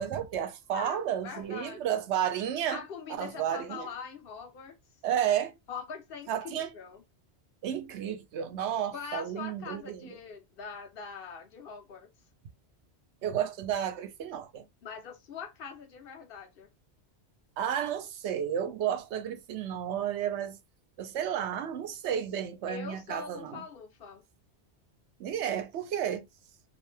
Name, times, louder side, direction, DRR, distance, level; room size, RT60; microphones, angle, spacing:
voice 1, 0.0-2.8 3.2-3.9 5.0-5.5 6.3-6.7 7.6-10.1 13.2-14.7 17.6-20.6 21.0-23.6 25.2-26.3, right 9 dB, 85° right, 0.9 m, -32 dB
voice 2, 0.7-2.0 2.7-4.8 5.7-7.0 8.9-12.1 14.8-16.7 22.7-24.2, left 6 dB, 60° left, 0.8 m, -43 dB
2.6 x 2.1 x 3.2 m
omnidirectional pair, 1.2 m